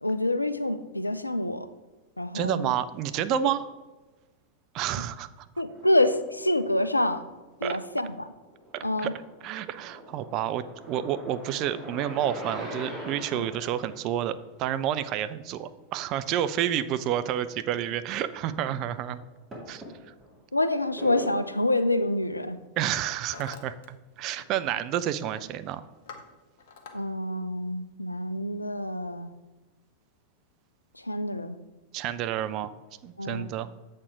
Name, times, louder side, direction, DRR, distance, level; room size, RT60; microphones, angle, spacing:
voice 1, 0.0-1.7 2.2-2.7 3.3-3.5 5.6-7.2 7.6-8.3 8.8-9.1 13.3-13.5 20.5-22.6 26.9-29.3 30.9-31.6 33.2-33.5, left 1 dB, 85° left, 11 dB, 0.4 m, -27 dB
voice 2, 2.3-3.6 4.7-5.5 7.6-7.8 8.7-9.1 9.4-19.2 19.7-19.8 22.8-25.8 31.9-32.7 33.0-33.7, right 11 dB, 40° right, 13 dB, 0.3 m, -30 dB
sound 1, 5.7-6.3 7.0-7.9 8.3-14.0 16.4-16.5 16.8-17.0 17.8-17.9 19.5-20.3 21.0-21.3, equal, 20° right, 2.1 m, -41 dB
Hammer, 22.4-22.6 22.9-23.9 24.1-24.7 24.9-25.3 25.7-27.0, left 5 dB, 55° left, 0.8 m, -47 dB
7.2 x 4.3 x 4.6 m, 1.2 s
figure-of-eight pair, 90°, 0 cm